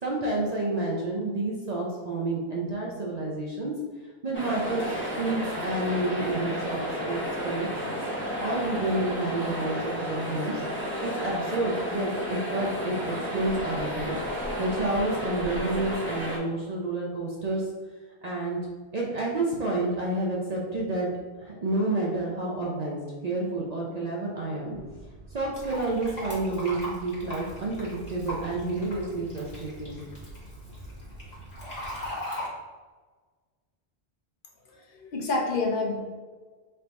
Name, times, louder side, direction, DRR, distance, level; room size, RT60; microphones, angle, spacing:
voice 1, 0.0-3.7 4.2-6.8 7.1-7.7 8.4-10.6 11.0-13.0 13.3-14.2 14.6-17.7 18.2-18.6 18.9-21.1 21.4-24.8 25.3-30.0, right 2 dB, 45° right, -4 dB, 0.6 m, -29 dB
sound 1, 4.3-16.4, equal, 10° left, 0.9 m, -32 dB
sound 2, 24.7-32.1, right 1 dB, 75° right, 0.9 m, -46 dB
Fill (with liquid), 25.5-32.5, left 1 dB, 40° left, 1.5 m, -39 dB
voice 2, 34.6-36.0, left 3 dB, 55° left, 0 dB, 0.9 m, -28 dB
3.3 x 2.7 x 4.5 m, 1.4 s
omnidirectional pair, 1.1 m